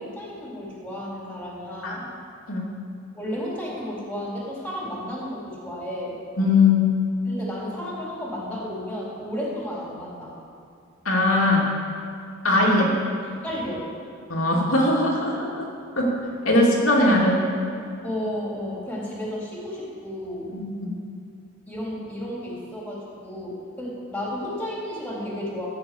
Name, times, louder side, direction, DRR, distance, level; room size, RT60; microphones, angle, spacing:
voice 1, 0.0-2.1 3.1-6.2 7.3-10.4 12.6-12.9 13.4-13.9 16.5-16.6 18.0-20.6 21.7-25.7, equal, 5° left, -6 dB, 3.7 m, -33 dB
voice 2, 6.4-6.9 11.0-11.6 12.4-12.8 14.3-15.7 16.0-16.1 16.4-17.4 20.5-20.6, left 2 dB, 90° left, -4 dB, 2.6 m, -20 dB
14.0 x 6.6 x 7.8 m, 2.5 s
head